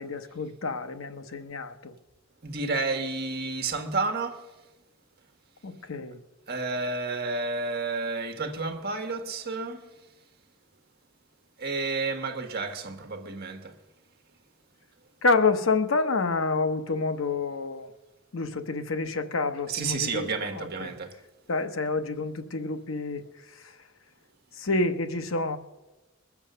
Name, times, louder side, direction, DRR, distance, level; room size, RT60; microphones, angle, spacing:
voice 1, 0.0-1.9 5.6-6.2 15.2-17.9 18.3-20.3 20.5-20.9 21.5-23.2 24.6-25.6, left 3 dB, 80° left, 0.9 m, -28 dB
voice 2, 2.4-4.4 6.5-9.9 11.6-13.8 19.7-21.1, right 3 dB, 50° right, 1.4 m, -31 dB
21.0 x 7.1 x 6.7 m
head